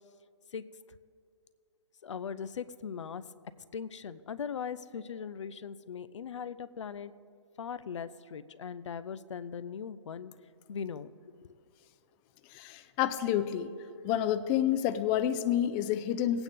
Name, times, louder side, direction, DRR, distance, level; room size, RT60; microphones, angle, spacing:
voice 1, 2.0-3.2 3.7-7.1 7.6-10.3 10.7-11.1 11.4-11.5, left 7 dB, 80° left, 14 dB, 0.5 m, -39 dB
voice 2, 12.5-13.7 14.0-16.4, left 11 dB, 25° left, 10 dB, 0.4 m, -29 dB
17.5 x 8.9 x 3.6 m, 2.3 s
hypercardioid pair, 140°, 15 cm